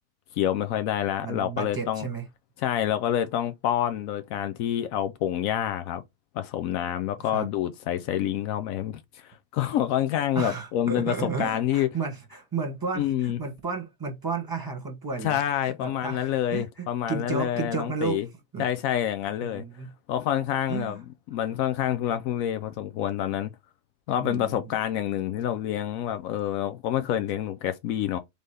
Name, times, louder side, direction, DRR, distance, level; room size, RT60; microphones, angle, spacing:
voice 1, 0.3-2.1 2.6-6.0 6.3-11.9 13.0-13.4 15.2-18.3 18.6-19.6 20.1-23.5 24.1-28.2, left 11 dB, 85° left, 1.0 m, -27 dB
voice 2, 1.2-2.2 7.2-7.5 10.3-18.2 18.5-18.6 19.5-19.9 20.7-21.0 24.2-24.5, right 5 dB, 15° right, 1.3 m, -33 dB
4.0 x 3.5 x 3.3 m
omnidirectional pair, 1.4 m